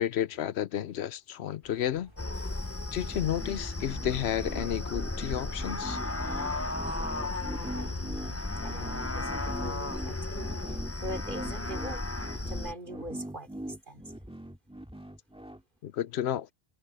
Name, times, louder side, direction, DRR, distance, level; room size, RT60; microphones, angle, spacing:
voice 1, 0.0-2.1 2.9-6.0 15.8-16.5, left 11 dB, 85° left, 0.9 m, -31 dB
sound 1, 1.6-7.2, equal, 25° right, 5.4 m, -54 dB
sound 2, 2.2-12.7, left 2 dB, 15° left, 0.8 m, -34 dB
sound 3, 3.1-15.6, right 1 dB, 5° right, 2.2 m, -42 dB
voice 2, 7.3-12.0 12.4-13.5 13.9-14.0, equal, 50° right, 4.0 m, -43 dB
omnidirectional pair, 1.1 m